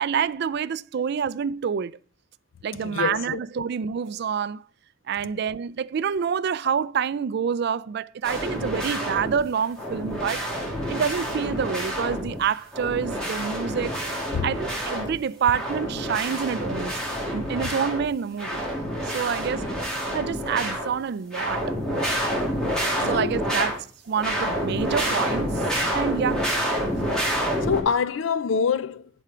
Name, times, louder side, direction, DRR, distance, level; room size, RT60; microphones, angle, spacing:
voice 1, 0.0-1.9 2.6-4.6 5.1-10.5 10.9-14.0 14.4-16.9 17.3-18.6 19.1-19.7 20.1-21.8 23.0-23.8 24.1-25.6 25.9-26.5, right 7 dB, 55° right, 0.4 m, -27 dB
voice 2, 2.8-3.7 14.3-14.5 17.6-17.7 23.0-23.6 27.3-29.1, left 6 dB, 70° left, 0.4 m, -27 dB
sound 1, 8.2-9.4 9.8-12.4 12.7-15.2 15.4-18.1 18.4-21.0 21.3-23.8 24.1-27.8, equal, 5° left, 2.6 m, -28 dB
11.0 x 4.3 x 5.0 m
head